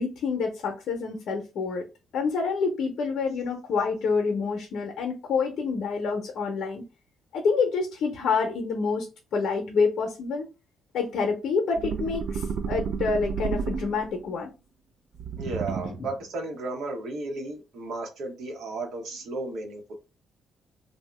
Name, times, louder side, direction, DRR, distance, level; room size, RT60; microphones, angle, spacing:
voice 1, 0.0-1.8 2.1-6.8 7.3-10.5 10.9-14.5 15.7-16.1, left 4 dB, 70° left, 0.6 m, -27 dB
sound 1, 11.8-14.2 15.2-16.1, right 6 dB, 55° right, 0.3 m, -31 dB
voice 2, 15.4-19.9, right 2 dB, 80° right, 1.0 m, -34 dB
2.6 x 2.1 x 3.2 m
cardioid pair, 90°, 0 cm